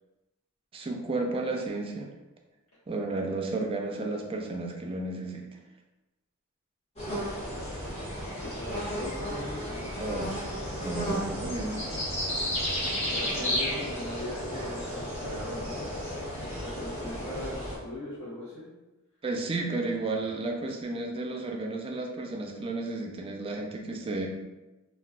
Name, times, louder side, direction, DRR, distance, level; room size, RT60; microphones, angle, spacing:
voice 1, 0.7-2.1 2.9-5.5 10.0-10.3 10.8-11.9 19.2-24.3, right 2 dB, 25° right, 1 dB, 0.3 m, -32 dB
sound 1, 7.0-17.8, equal, 30° left, 0.9 m, -33 dB
voice 2, 8.4-9.9 12.9-16.0 16.6-18.7, left 1 dB, 80° left, -8 dB, 0.7 m, -39 dB
2.2 x 2.2 x 3.5 m, 1.0 s
head